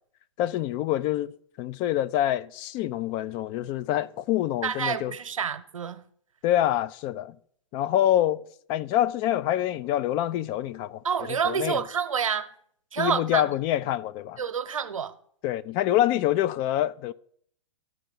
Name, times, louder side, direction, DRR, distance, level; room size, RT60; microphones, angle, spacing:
voice 1, 0.4-1.3 1.6-5.1 6.4-7.4 7.7-8.4 8.7-11.0 11.4-11.8 13.0-14.4 15.4-17.1, left 12 dB, 30° left, 0.3 m, -26 dB
voice 2, 4.6-6.0 11.0-12.5 12.9-13.5 14.4-15.1, right 7 dB, 90° right, 0.9 m, -28 dB
13.5 x 4.7 x 5.3 m
hypercardioid pair, 125°, 17 cm